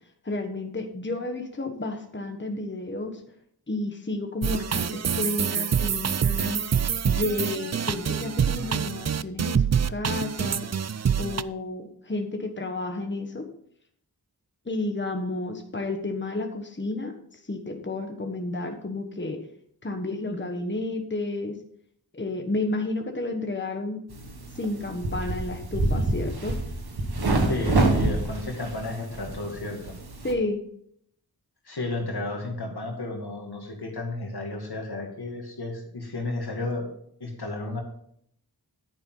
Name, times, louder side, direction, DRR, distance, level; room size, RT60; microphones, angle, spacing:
voice 1, 0.2-3.2 3.7-10.7 11.2-13.5 14.6-19.4 19.8-21.6 22.1-24.0 24.5-26.6 30.2-30.6, left 2 dB, 30° left, 4 dB, 1.3 m, -31 dB
sound 1, 4.4-11.4, right 7 dB, 45° right, 0.4 m, -26 dB
sound 2, 24.1-30.3, right 2 dB, 80° right, 1.7 m, -27 dB
voice 2, 27.5-29.9 31.6-36.9 37.2-37.8, left 2 dB, 85° left, 2 dB, 2.3 m, -32 dB
10.5 x 9.3 x 3.9 m, 0.67 s
wide cardioid pair, 70°, 38 cm